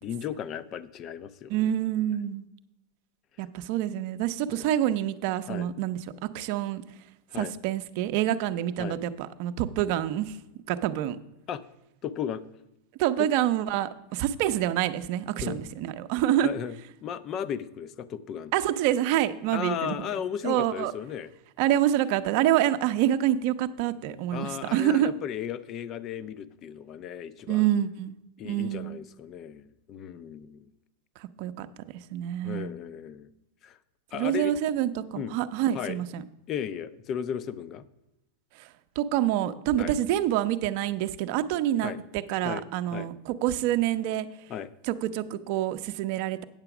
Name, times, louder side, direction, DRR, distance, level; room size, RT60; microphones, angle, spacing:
voice 1, 0.0-1.7 4.5-4.6 5.5-5.7 7.3-7.5 8.8-9.0 11.5-11.6 12.0-12.5 13.2-13.3 15.4-15.6 16.4-16.7 17.0-18.5 19.5-21.3 24.3-27.7 28.4-30.7 32.4-33.3 33.6-33.8 34.1-34.5 35.1-35.3 35.7-36.0 36.5-37.9 39.8-39.9 41.8-42.0 42.4-42.6 42.9-43.1 44.5-44.7, left 9 dB, 35° left, 15 dB, 0.5 m, -35 dB
voice 2, 1.5-2.5 3.4-6.8 7.3-10.4 10.7-11.2 13.0-16.5 18.5-20.1 20.4-20.9 21.6-25.1 27.5-28.1 28.4-29.0 31.2-31.7 31.9-32.7 34.1-36.2 38.5-38.7 39.0-44.3 44.8-46.4, right 12 dB, 55° right, 10 dB, 0.6 m, -27 dB
8.9 x 6.8 x 5.9 m, 0.88 s
supercardioid pair, 135°, 0 cm